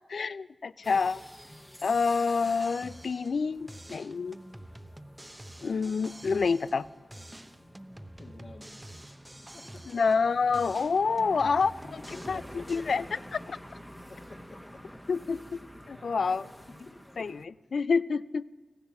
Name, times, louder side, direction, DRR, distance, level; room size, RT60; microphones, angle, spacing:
voice 1, 0.1-1.2 1.8-4.4 5.6-6.9 9.9-13.0 15.1-15.6 15.9-16.4 17.2-17.3 17.7-18.4, left 5 dB, 75° left, 18 dB, 0.3 m, -27 dB
sound 1, 0.8-17.5, equal, 10° left, 1.2 m, -50 dB
sound 2, 2.4-3.4 3.7-6.8 7.1-10.3 10.5-12.9, right 1 dB, 15° right, 0.8 m, -48 dB
voice 2, 8.2-8.7 9.5-9.8 12.1-13.2 14.1-14.8 16.2-16.5 16.8-17.3, left 2 dB, 60° left, 2 dB, 1.6 m, -49 dB
15.0 x 10.5 x 7.1 m, 1.3 s
cardioid pair, 40°, 0 cm